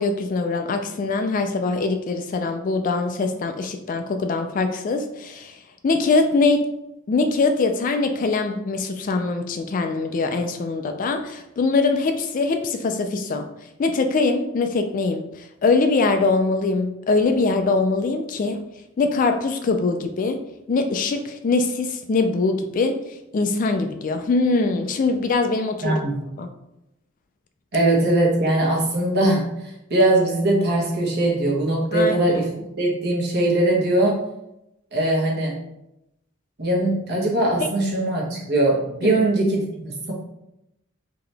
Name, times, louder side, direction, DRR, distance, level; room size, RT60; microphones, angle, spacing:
voice 1, 0.0-6.7 7.1-13.5 13.8-18.6 19.0-20.4 20.7-26.0 26.4-26.5 31.9-32.2 37.6-37.7 39.0-39.2, left 3 dB, 40° left, 7 dB, 0.3 m, -22 dB
voice 2, 25.8-26.2 27.7-32.5 32.8-34.2 34.9-35.5 36.6-40.1, right 1 dB, 50° right, -2 dB, 1.0 m, -21 dB
3.8 x 2.9 x 3.3 m, 0.87 s
head